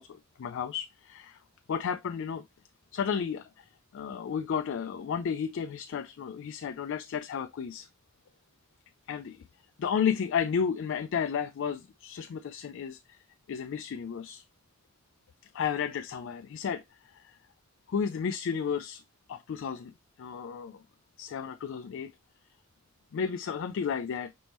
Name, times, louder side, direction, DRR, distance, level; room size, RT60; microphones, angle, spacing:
voice 1, 0.0-1.4 1.7-2.4 2.9-7.9 9.1-9.4 9.8-13.2 13.5-14.4 15.5-17.4 17.9-19.0 19.3-19.9 20.2-20.8 21.2-22.1 23.1-24.3, left 7 dB, 65° left, 0.3 m, -33 dB
5.1 x 3.5 x 2.9 m
head